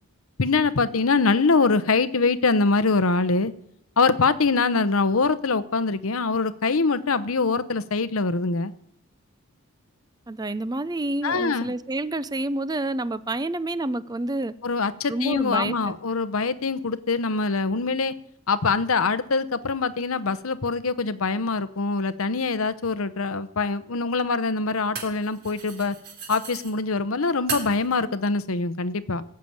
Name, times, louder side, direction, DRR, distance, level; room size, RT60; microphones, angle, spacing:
voice 1, 0.4-3.5 4.0-8.7 11.2-11.7 14.6-18.1 18.5-26.0 26.3-29.2, left 4 dB, 75° left, 0.9 m, -23 dB
voice 2, 10.3-14.5 15.1-15.9, right 2 dB, 20° right, 0.5 m, -28 dB
sound 1, 21.9-22.0 23.6-26.7 27.5-28.0, right 5 dB, 50° right, 3.6 m, -37 dB
18.0 x 7.7 x 8.7 m
head